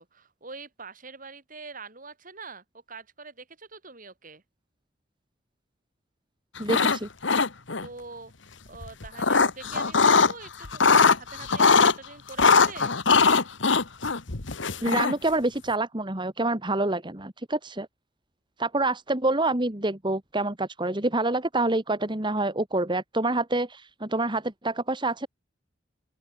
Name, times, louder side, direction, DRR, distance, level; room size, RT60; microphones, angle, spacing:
voice 1, 0.0-4.4 7.8-8.3 8.7-13.0, right 4 dB, 45° right, 5.9 m, -44 dB
sound 1, 6.6-7.0 7.2-7.9 8.8-10.3 10.6-11.9 12.4-15.3, left 4 dB, 75° left, 1.6 m, -20 dB
voice 2, 6.6-7.1 14.8-17.9 18.6-25.3, right 2 dB, 25° right, 2.1 m, -27 dB
open air
head